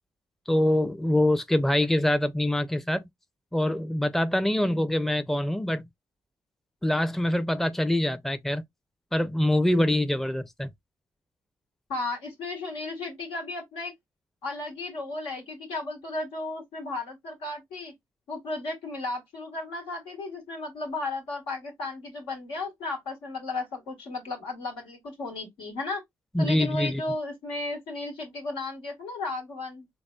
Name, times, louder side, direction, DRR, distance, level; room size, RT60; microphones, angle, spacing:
voice 1, 0.5-3.1 3.5-5.8 6.8-8.6 9.1-10.7 26.3-27.0, left 1 dB, 5° left, 0.5 m, -24 dB
voice 2, 11.9-13.9 14.4-17.9 18.3-26.0 26.4-29.9, left 2 dB, 90° left, 1.5 m, -34 dB
4.0 x 3.0 x 2.3 m
supercardioid pair, 50°, 9 cm